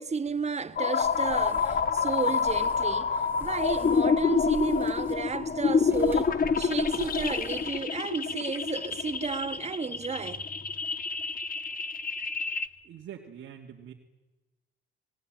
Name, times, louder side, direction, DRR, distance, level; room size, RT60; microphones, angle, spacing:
voice 1, 0.0-10.5, right 5 dB, 35° right, 1.5 m, -33 dB
sound 1, 0.8-12.7, left 5 dB, 45° left, 1.4 m, -28 dB
sound 2, 1.0-7.8, right 2 dB, 10° right, 5.9 m, -44 dB
voice 2, 12.8-13.9, right 9 dB, 70° right, 2.8 m, -44 dB
25.5 x 20.5 x 9.3 m
cardioid pair, 90°, 20 cm